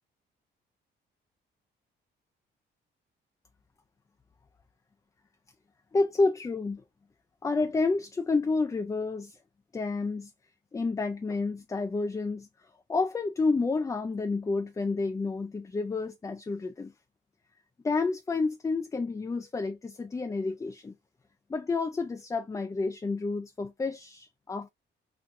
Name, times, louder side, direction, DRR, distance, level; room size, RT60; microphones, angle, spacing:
voice 1, 5.9-6.8 7.4-9.4 9.7-10.3 10.7-12.5 12.9-16.9 17.8-20.9 21.5-24.7, left 3 dB, 15° left, 0.3 m, -29 dB
4.0 x 2.2 x 2.5 m
cardioid pair, 90°, 20 cm